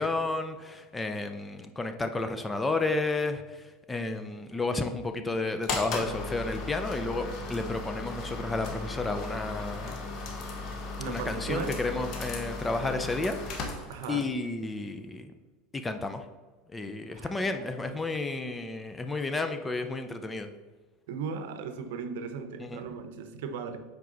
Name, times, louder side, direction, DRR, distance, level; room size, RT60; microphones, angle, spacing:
voice 1, 0.0-10.0 11.1-15.3 15.7-16.2 16.7-20.5 22.6-22.8, left 3 dB, 10° left, 7 dB, 0.5 m, -32 dB
sound 1, 5.6-14.3, left 3 dB, 40° left, 1.2 m, -36 dB
voice 2, 11.0-11.8 13.9-14.3 17.1-17.7 21.1-23.8, right 6 dB, 75° right, 8 dB, 0.8 m, -37 dB
7.6 x 4.7 x 3.9 m, 1.3 s
supercardioid pair, 145°, 0 cm